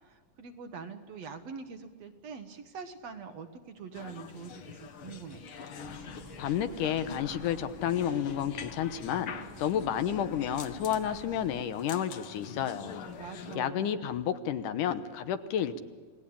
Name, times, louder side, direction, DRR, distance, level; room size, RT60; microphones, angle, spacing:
voice 1, 0.0-5.4 13.2-14.1, right 5 dB, 60° right, 7 dB, 2.1 m, -44 dB
sound 1, 3.9-13.6, left 6 dB, 55° left, 1.6 m, -45 dB
sound 2, 5.8-11.6, right 1 dB, 10° right, 1.1 m, -49 dB
voice 2, 6.4-9.3 9.6-13.1 13.6-15.8, left 9 dB, 80° left, 10 dB, 2.5 m, -31 dB
29.0 x 19.0 x 8.7 m, 1.5 s
omnidirectional pair, 3.7 m